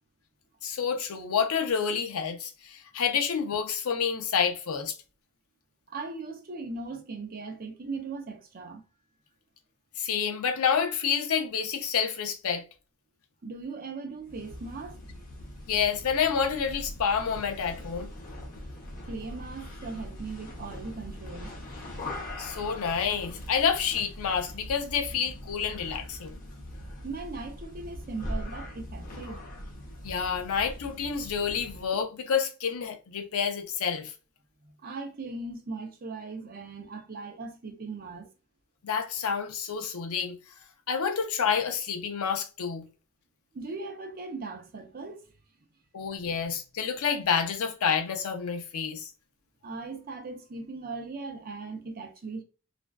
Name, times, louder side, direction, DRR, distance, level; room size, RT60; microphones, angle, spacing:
voice 1, 0.6-4.9 10.0-12.6 15.7-18.1 22.4-26.4 30.0-34.1 38.8-40.4 40.9-42.8 45.9-49.1, left 6 dB, 85° left, 0.5 m, -28 dB
voice 2, 5.9-8.8 13.4-15.0 19.0-21.5 27.0-29.4 34.6-38.3 43.5-45.3 49.6-52.4, right 3 dB, 45° right, 0.5 m, -39 dB
sound 1, 14.2-31.9, left 1 dB, 40° left, 0.7 m, -41 dB
2.5 x 2.2 x 2.3 m
head